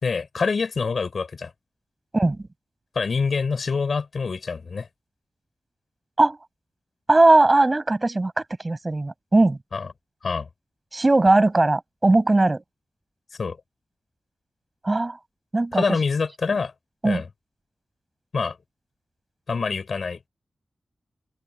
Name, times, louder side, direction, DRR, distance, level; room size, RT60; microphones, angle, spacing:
voice 1, 0.0-1.5 3.0-4.9 9.7-9.9 10.2-10.5 13.4-13.6 15.7-16.7 17.0-17.3 18.3-18.6 19.5-20.2, left 5 dB, 55° left, 5.2 m, -25 dB
voice 2, 7.1-8.3 8.6-9.6 10.9-12.6 14.8-15.2 15.5-16.0 17.0-17.2, right 2 dB, 25° right, 7.4 m, -19 dB
open air
wide cardioid pair, 150°, 0 cm